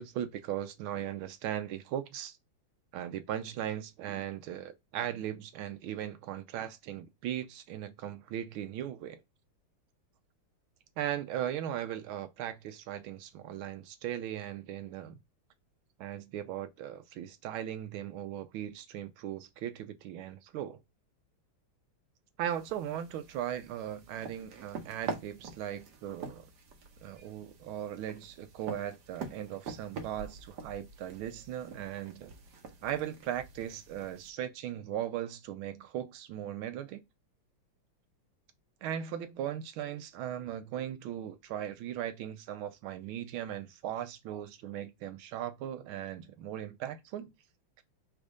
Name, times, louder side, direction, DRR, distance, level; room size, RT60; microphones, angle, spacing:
voice 1, 0.0-2.4 2.9-9.2 11.0-15.2 16.0-20.8 22.4-26.5 27.0-32.3 32.8-37.0 38.8-47.3, right 11 dB, 75° right, 1.4 m, -38 dB
sound 1, 22.5-34.3, right 5 dB, 60° right, 1.2 m, -46 dB
4.2 x 2.6 x 4.7 m
omnidirectional pair, 2.4 m